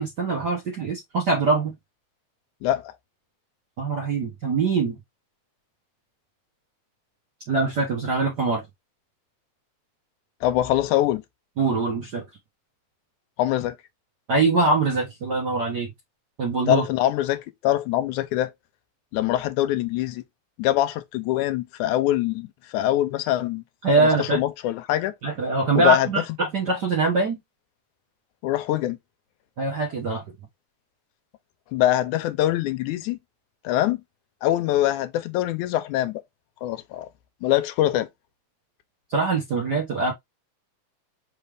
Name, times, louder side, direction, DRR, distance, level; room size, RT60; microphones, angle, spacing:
voice 1, 0.0-1.7 3.8-5.0 7.5-8.6 11.6-12.2 14.3-15.9 16.4-16.8 23.8-24.4 25.2-27.4 29.6-30.2 39.1-40.1, right 3 dB, 55° right, 1.1 m, -23 dB
voice 2, 2.6-2.9 10.4-11.2 13.4-13.8 16.7-18.5 19.1-20.2 20.6-23.6 24.0-25.1 25.8-26.1 28.4-29.0 31.7-33.2 33.6-34.0 34.4-36.2 36.6-37.1 37.4-38.1, left 13 dB, 85° left, 2.1 m, -23 dB
4.8 x 3.3 x 3.3 m
omnidirectional pair, 3.4 m